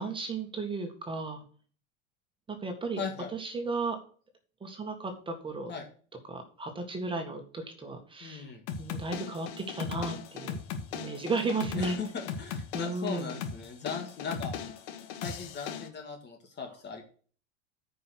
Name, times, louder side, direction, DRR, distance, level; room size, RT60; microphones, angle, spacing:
voice 1, 0.0-1.4 2.5-3.0 3.3-4.0 4.6-5.7 6.3-8.5 8.8-9.5 9.7-10.6 10.9-12.0 12.7-13.3, right 3 dB, 15° right, 5 dB, 1.9 m, -34 dB
voice 2, 3.0-3.3 5.7-5.9 8.2-8.6 11.8-14.5 15.2-17.0, left 5 dB, 30° left, 3 dB, 1.9 m, -38 dB
sound 1, 8.7-15.9, left 7 dB, 75° left, 1.8 m, -38 dB
9.4 x 5.5 x 6.2 m, 0.42 s
supercardioid pair, 135°, 35 cm